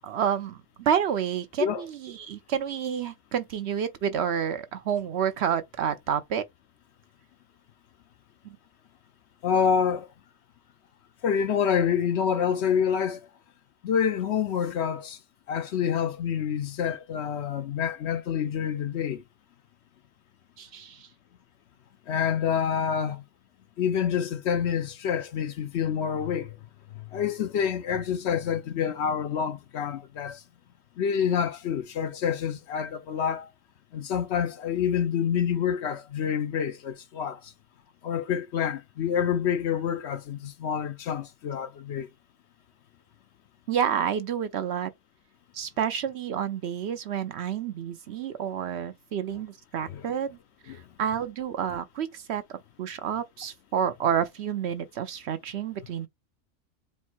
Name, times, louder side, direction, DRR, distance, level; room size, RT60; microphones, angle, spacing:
voice 1, 0.0-6.4 8.4-8.6 20.6-21.1 43.7-44.9 45.5-50.4 50.6-56.1, right 8 dB, 65° right, 0.8 m, -29 dB
voice 2, 9.4-10.1 11.2-13.3 13.8-15.2 15.5-19.2 22.1-23.2 23.8-26.6 27.0-30.4 31.0-33.5 33.9-37.5 38.0-42.1 49.9-50.0 50.7-50.8, left 8 dB, 65° left, 0.8 m, -27 dB
4.4 x 2.0 x 4.3 m
omnidirectional pair, 1.3 m